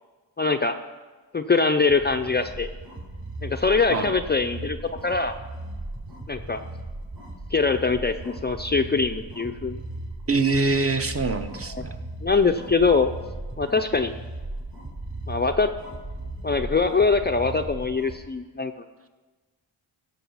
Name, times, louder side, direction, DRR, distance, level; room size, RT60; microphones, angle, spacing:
voice 1, 0.4-0.8 1.3-2.7 3.4-4.8 5.0-5.3 6.3-6.6 7.5-9.8 11.7-11.8 12.2-13.1 13.6-14.1 15.3-15.7 16.4-18.7, left 4 dB, 25° left, 6 dB, 0.5 m, -23 dB
sound 1, 1.8-18.2, right 2 dB, 55° right, 4.2 m, -37 dB
voice 2, 10.3-12.0, right 3 dB, 30° right, 7 dB, 0.9 m, -24 dB
16.0 x 7.0 x 5.7 m, 1.3 s
cardioid pair, 85°, 46 cm